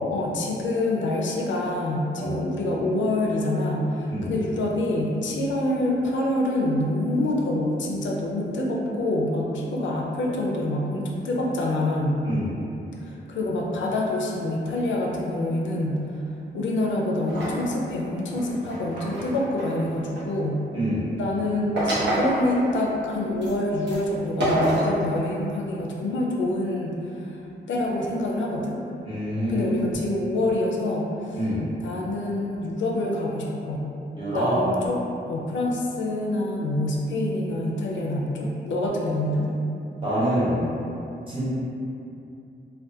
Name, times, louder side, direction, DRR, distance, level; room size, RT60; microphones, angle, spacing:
voice 1, 0.1-12.2 13.0-16.0 16.5-20.6 21.2-27.4 27.7-28.8 29.5-31.4 31.8-33.8 34.3-35.0 35.3-39.5, left 1 dB, 85° left, -2 dB, 0.4 m, -26 dB
voice 2, 12.2-12.5 20.7-21.1 29.0-29.7 31.3-31.7 34.1-34.6 40.0-40.7 41.3-41.4, equal, 25° right, -12 dB, 0.9 m, -26 dB
sound 1, 17.3-17.6 18.3-20.2 21.8-22.9 23.4-23.5 23.9-24.0 24.4-25.0, right 1 dB, 70° right, 0.7 m, -26 dB
2.4 x 2.2 x 2.6 m, 2.7 s
wide cardioid pair, 170°, 19 cm